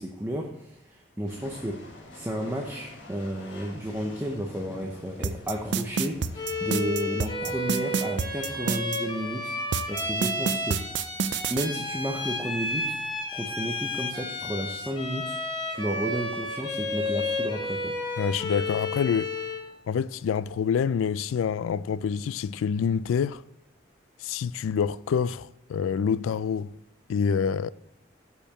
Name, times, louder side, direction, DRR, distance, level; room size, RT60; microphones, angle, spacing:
voice 1, 0.0-10.9 11.5-13.0 13.3-15.4 15.7-18.0, equal, 10° right, 0.6 m, -32 dB
sound 1, 1.3-6.9, left 1 dB, 65° left, 1.4 m, -47 dB
sound 2, 5.2-9.0 9.7-11.7, right 6 dB, 60° right, 0.4 m, -27 dB
Bowed string instrument, 6.3-19.7, left 2 dB, 25° left, 1.2 m, -32 dB
voice 2, 18.2-19.3 19.9-23.4 24.2-26.7 27.1-27.7, left 7 dB, 80° left, 0.3 m, -27 dB
6.7 x 5.4 x 7.0 m
head